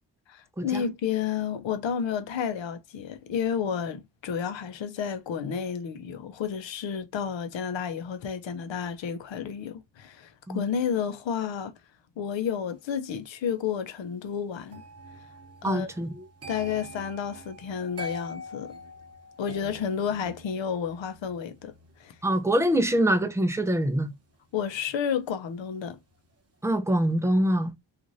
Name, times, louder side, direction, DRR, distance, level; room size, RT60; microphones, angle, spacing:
voice 1, 0.3-11.7 12.2-14.8 15.6-15.9 16.5-18.8 19.4-21.7 22.0-22.1 24.5-26.0, left 7 dB, 85° left, 0.7 m, -31 dB
sound 1, 14.7-25.7 26.0-26.3, equal, 35° right, 0.8 m, -46 dB
voice 2, 15.6-16.2 22.2-24.1 26.6-27.7, right 1 dB, 5° right, 0.4 m, -24 dB
3.1 x 2.5 x 2.6 m
cardioid pair, 75°, 44 cm